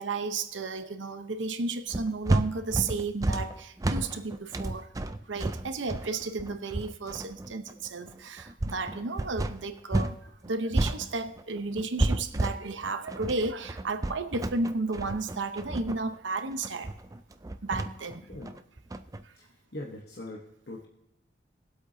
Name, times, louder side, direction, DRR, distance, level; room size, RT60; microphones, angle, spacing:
voice 1, 0.0-4.9 5.3-10.2 10.5-16.9 17.6-18.2, right 3 dB, 90° right, 0.9 m, -33 dB
sound 1, 1.9-10.2 10.4-19.2, right 2 dB, 20° right, 0.4 m, -31 dB
voice 2, 19.7-20.9, left 1 dB, 55° left, 1.1 m, -41 dB
21.5 x 8.1 x 2.7 m
head